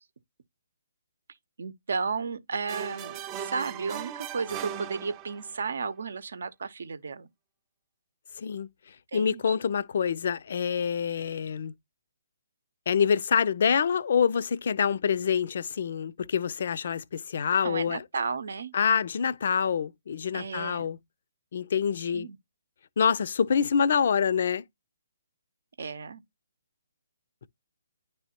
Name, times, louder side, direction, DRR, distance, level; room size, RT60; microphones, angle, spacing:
voice 1, 1.6-7.3 9.1-9.6 17.6-18.7 20.3-20.9 22.1-22.4 25.8-26.2, right 5 dB, 60° right, 0.7 m, -33 dB
sound 1, 2.7-5.6, right 10 dB, 25° right, 0.4 m, -38 dB
voice 2, 8.4-8.7 9.1-11.7 12.9-18.0 18.7-21.0 21.5-22.3 23.0-24.6, left 7 dB, 55° left, 0.4 m, -26 dB
9.9 x 3.4 x 2.8 m
figure-of-eight pair, 135°, 0 cm